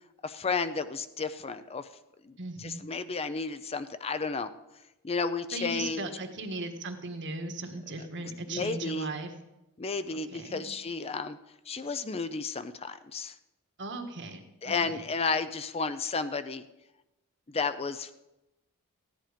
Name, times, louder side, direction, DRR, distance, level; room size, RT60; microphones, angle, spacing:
voice 1, 0.2-1.9 2.2-4.5 5.0-6.1 8.5-9.1 9.8-11.4 11.7-13.4 14.6-16.6 17.5-18.1, left 4 dB, 25° left, 11 dB, 0.5 m, -32 dB
voice 2, 2.4-2.8 5.5-9.3 10.1-10.7 13.8-15.0, right 2 dB, 55° right, 6 dB, 1.6 m, -38 dB
15.5 x 10.5 x 5.1 m, 0.97 s
head